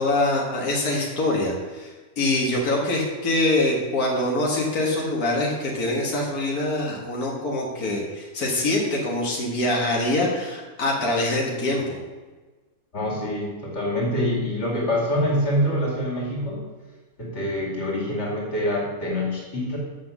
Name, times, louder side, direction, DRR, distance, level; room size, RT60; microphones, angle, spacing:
voice 1, 0.0-12.0, left 1 dB, 90° left, -2 dB, 1.9 m, -24 dB
voice 2, 12.9-16.7 17.2-19.8, equal, 50° left, -3 dB, 2.7 m, -25 dB
7.5 x 5.9 x 7.1 m, 1.3 s
omnidirectional pair, 1.5 m